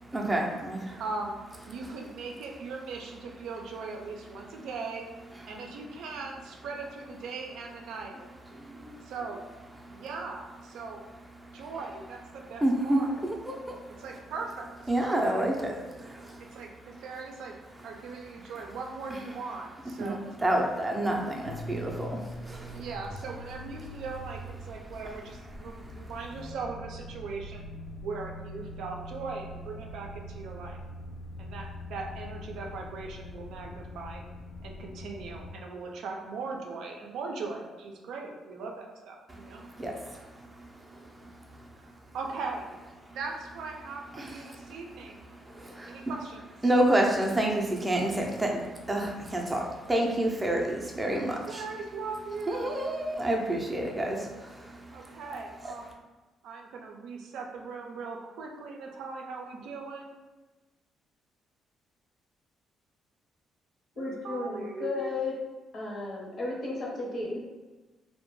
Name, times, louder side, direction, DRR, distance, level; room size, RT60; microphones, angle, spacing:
voice 1, 0.1-1.0 8.5-9.1 9.8-10.0 11.4-11.6 12.6-14.0 14.9-16.6 20.0-22.9 25.7-26.0 39.3-41.7 43.1-43.2 44.1-44.7 45.3-46.1 46.6-51.6 52.5-55.2, right 1 dB, 15° right, 0 dB, 0.4 m, -30 dB
voice 2, 1.0-1.4 1.7-5.1 5.4-8.2 9.0-9.4 9.9-11.0 11.5-13.2 14.0-14.7 15.3-15.4 16.5-17.5 17.8-20.2 22.7-27.6 28.0-30.8 31.4-34.2 34.6-39.7 41.8-41.9 42.1-42.7 43.1-45.3 45.8-46.5 51.5-52.8 54.9-56.0 56.4-60.2 64.0-65.2, right 4 dB, 80° right, 1 dB, 0.4 m, -39 dB
sound 1, 21.4-35.5, left 1 dB, 80° left, 0.3 m, -43 dB
voice 3, 64.0-65.4 65.7-67.4, left 2 dB, 55° left, -3 dB, 0.8 m, -34 dB
2.2 x 2.1 x 3.0 m, 1.2 s
cardioid pair, 90°, 0 cm